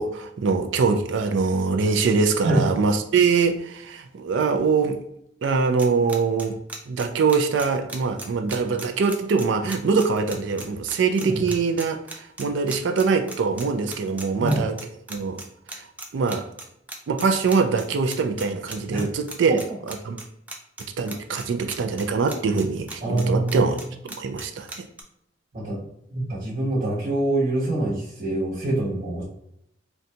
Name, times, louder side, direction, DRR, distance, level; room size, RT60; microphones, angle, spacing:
voice 1, 0.0-5.0 5.4-6.6 6.9-12.0 12.4-14.8 15.1-15.4 16.1-16.4 17.1-19.6 19.9-20.2 21.0-23.8 24.2-24.9, right 4 dB, 75° right, 6 dB, 0.4 m, -23 dB
sound 1, 5.8-25.0, right 2 dB, 10° right, 0.4 m, -37 dB
voice 2, 23.0-23.9 25.5-25.8 26.1-29.2, right 1 dB, 55° right, -8 dB, 1.0 m, -25 dB
3.9 x 2.2 x 2.7 m, 0.77 s
head